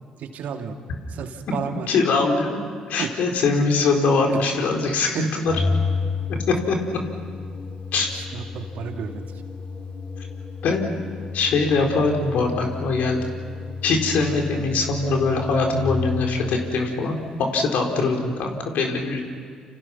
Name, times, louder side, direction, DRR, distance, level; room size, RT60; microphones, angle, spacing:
voice 1, 0.2-0.8 1.1-1.9 3.0-3.1 5.1-5.3 8.1-9.2, right 7 dB, 65° right, 5 dB, 2.3 m, -32 dB
voice 2, 1.9-5.6 6.5-7.0 7.9-8.1 10.6-10.9 11.3-13.2 13.8-19.2, left 3 dB, 65° left, 2 dB, 4.2 m, -22 dB
Organ, 5.4-16.5, left 4 dB, 45° left, 4.4 m, -31 dB
29.5 x 27.5 x 6.0 m, 2.1 s
hypercardioid pair, 50°, 3 cm